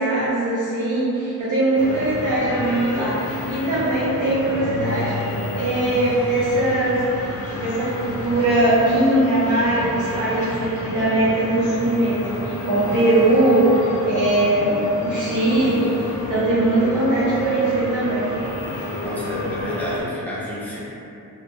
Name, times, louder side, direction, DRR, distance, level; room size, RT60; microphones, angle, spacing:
voice 1, 0.0-7.0 7.5-18.3, right 1 dB, 55° right, -10 dB, 0.6 m, -21 dB
sound 1, 1.8-20.0, left 1 dB, 75° left, 0.6 m, -29 dB
voice 2, 19.0-20.8, equal, 5° left, -9 dB, 0.6 m, -30 dB
2.1 x 2.0 x 2.9 m, 2.7 s
wide cardioid pair, 85°, 36 cm